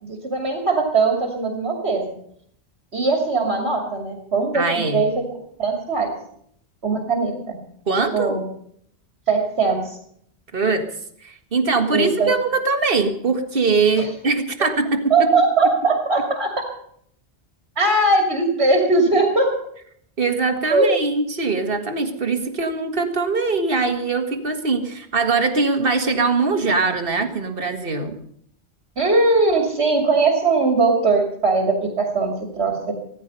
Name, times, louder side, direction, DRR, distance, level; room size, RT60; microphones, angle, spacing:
voice 1, 0.0-2.1 2.9-5.2 5.6-6.1 6.8-7.6 8.1-8.4 9.3-10.0 11.9-12.3 14.0-14.1 14.6-14.7 15.1-16.5 17.8-19.6 20.7-20.9 29.0-32.9, right 3 dB, 75° right, 2 dB, 2.9 m, -20 dB
voice 2, 4.5-5.0 7.9-8.4 10.5-10.9 11.2-15.3 20.2-28.2, right 4 dB, 55° right, 6 dB, 2.0 m, -22 dB
17.0 x 14.5 x 5.5 m, 0.67 s
omnidirectional pair, 1.1 m